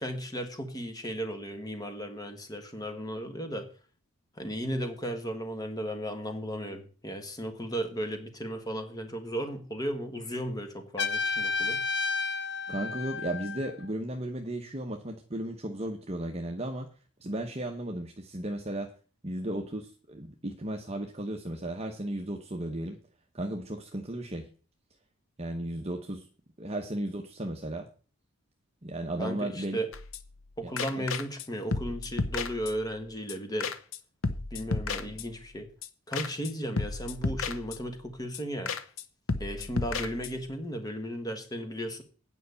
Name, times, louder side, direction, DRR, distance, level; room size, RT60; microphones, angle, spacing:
voice 1, 0.0-3.7 4.3-11.8 29.2-29.9 30.6-33.7 34.5-35.7 36.1-38.7 39.4-42.0, equal, 15° left, 6 dB, 1.6 m, -35 dB
Trumpet, 11.0-13.8, left 4 dB, 50° left, 1.1 m, -31 dB
voice 2, 12.7-16.9 17.2-18.9 19.2-23.0 23.3-24.5 25.4-26.3 26.6-27.9 28.8-29.8 30.6-31.1, right 1 dB, 30° right, 3 dB, 0.9 m, -35 dB
sound 1, 29.9-30.5 30.8-31.5 31.7-33.0 33.3-33.4 33.6-34.0 34.2-35.6 35.8-35.9 36.1-36.5 36.8-38.1 38.3-38.4 38.7-39.0 39.3-40.5, left 4 dB, 65° left, 0.9 m, -33 dB
9.3 x 5.5 x 8.1 m, 0.39 s
head